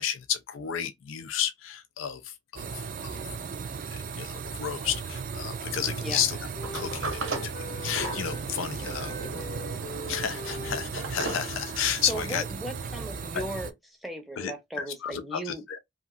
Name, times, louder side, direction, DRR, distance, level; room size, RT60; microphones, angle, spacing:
voice 1, 0.0-3.2 3.8-6.4 6.7-9.1 10.1-12.4 13.3-13.4 14.4-15.8, left 8 dB, 85° left, 0.4 m, -32 dB
sound 1, 2.6-13.7, right 5 dB, 40° right, 0.3 m, -36 dB
Wind instrument woodwind instrument, 4.7-8.5 8.8-13.3, left 1 dB, 40° left, 0.7 m, -44 dB
Sliding door, 6.6-12.1, right 2 dB, 90° right, 0.9 m, -37 dB
voice 2, 12.1-13.7 14.0-15.8, equal, ahead, 0.6 m, -37 dB
2.8 x 2.5 x 2.4 m
head